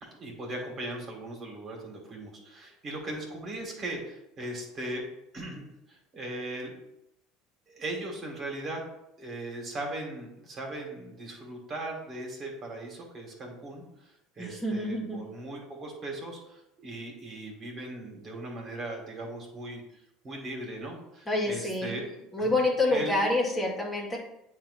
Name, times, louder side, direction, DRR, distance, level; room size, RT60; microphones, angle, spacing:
voice 1, 0.0-5.0 5.3-6.7 7.7-8.8 9.2-19.8 20.2-22.6 22.9-23.2, right 1 dB, 40° right, 0 dB, 1.9 m, -38 dB
voice 2, 14.4-15.2 21.3-22.0 22.3-24.2, left 2 dB, 20° left, -2 dB, 1.8 m, -27 dB
8.6 x 2.9 x 4.2 m, 0.83 s
hypercardioid pair, 80°, 0 cm